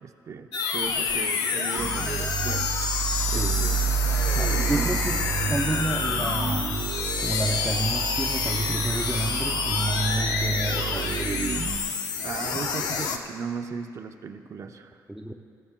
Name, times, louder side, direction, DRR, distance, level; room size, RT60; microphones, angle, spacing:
voice 1, 0.0-2.7 3.3-4.0 4.5-5.0 12.2-15.0, right 5 dB, 50° right, 6 dB, 0.7 m, -36 dB
Heterodyne radio effect, 0.5-13.2, left 5 dB, 85° left, 0.8 m, -28 dB
Car, 0.7-10.3, left 1 dB, 60° left, 2.6 m, -41 dB
sound 1, 1.8-11.8, right 7 dB, 65° right, 1.0 m, -30 dB
voice 2, 3.2-3.7 4.3-6.9 7.2-11.8 15.1-15.3, right 1 dB, 5° right, 1 dB, 0.5 m, -30 dB
21.0 x 14.5 x 2.3 m, 2.3 s
cardioid pair, 110°, 7 cm